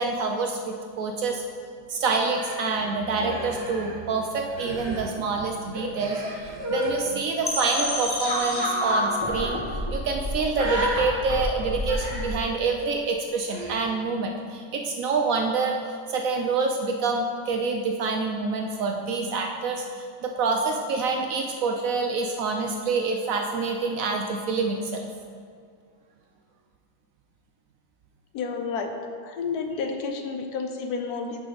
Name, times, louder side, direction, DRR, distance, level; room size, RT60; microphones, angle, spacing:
voice 1, 0.0-1.4 1.9-15.8 16.1-25.1, right 4 dB, 70° right, 3 dB, 0.8 m, -27 dB
Human voice, 2.3-4.1 4.4-5.0 5.7-6.9 7.6-7.9 8.8-9.0 9.3-9.5 10.5-11.0 11.9-12.4 13.5-13.8, equal, 85° right, 1.9 m, -32 dB
sound 1, 7.4-12.4, left 1 dB, 20° left, 0.7 m, -29 dB
voice 2, 28.3-28.9 29.2-31.4, left 5 dB, 70° left, 4 dB, 1.1 m, -30 dB
8.3 x 5.1 x 3.9 m, 2.1 s
omnidirectional pair, 1.8 m